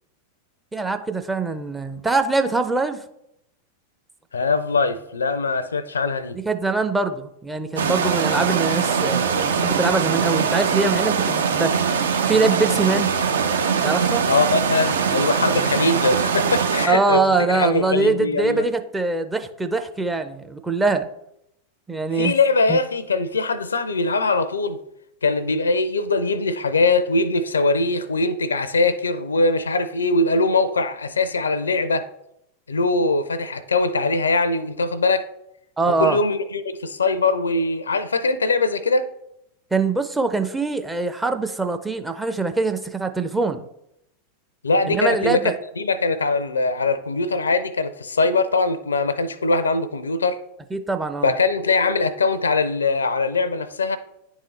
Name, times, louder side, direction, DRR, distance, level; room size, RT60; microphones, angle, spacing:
voice 1, 0.7-3.0 6.5-11.7 12.3-13.1 13.8-14.2 16.8-21.1 21.9-22.3 22.7-22.8 35.8-36.2 39.7-43.6 44.9-45.6 50.7-51.3, right 3 dB, 10° right, 0.5 m, -23 dB
voice 2, 4.3-6.4 14.3-18.7 22.1-24.8 25.2-32.1 32.7-35.2 36.0-39.1 44.6-45.4 45.8-50.4 51.2-54.0, left 3 dB, 75° left, 0.4 m, -21 dB
sound 1, 7.8-16.9, right 6 dB, 65° right, 0.5 m, -22 dB
10.0 x 3.6 x 3.2 m
figure-of-eight pair, 90°, 0 cm